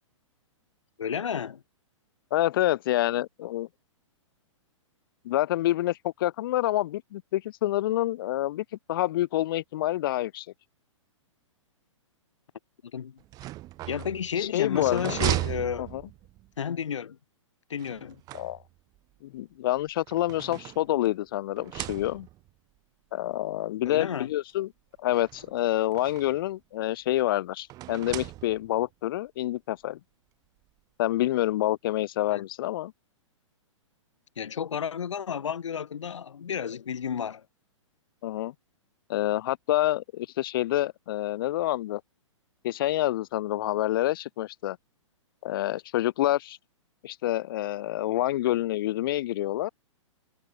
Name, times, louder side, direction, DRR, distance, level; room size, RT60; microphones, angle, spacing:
voice 1, 1.0-1.6 12.9-13.2 13.9-15.9 16.6-17.2 17.7-18.2 23.9-24.3 32.3-32.4 34.4-37.4, left 7 dB, 65° left, 1.2 m, -32 dB
voice 2, 2.3-3.7 5.2-10.5 14.4-15.2 15.8-16.0 18.3-18.6 19.2-22.3 23.1-24.7 25.0-30.0 31.0-32.9 38.2-38.5 39.1-42.0 42.6-44.8 45.4-46.6 47.0-49.7, left 15 dB, 45° left, 0.5 m, -27 dB
sound 1, 13.2-16.5 17.8-19.0 19.8-21.2 21.6-22.5 23.4-23.5 23.9-24.0 25.1-26.5 27.7-28.9, right 17 dB, 25° right, 0.7 m, -36 dB
figure-of-eight pair, 115°, 17 cm